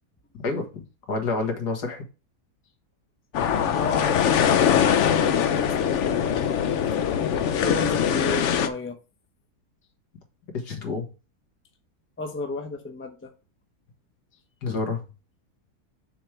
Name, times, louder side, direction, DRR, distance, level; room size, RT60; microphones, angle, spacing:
voice 1, 0.4-2.0 10.5-11.1 14.6-15.0, left 3 dB, 90° left, 2.2 m, -29 dB
sound 1, 3.3-8.7, left 8 dB, 60° left, 0.8 m, -22 dB
voice 2, 3.7-4.6 5.6-6.5 7.6-9.0 12.2-13.3, left 3 dB, 10° left, 0.7 m, -33 dB
6.5 x 3.3 x 5.9 m
omnidirectional pair, 1.7 m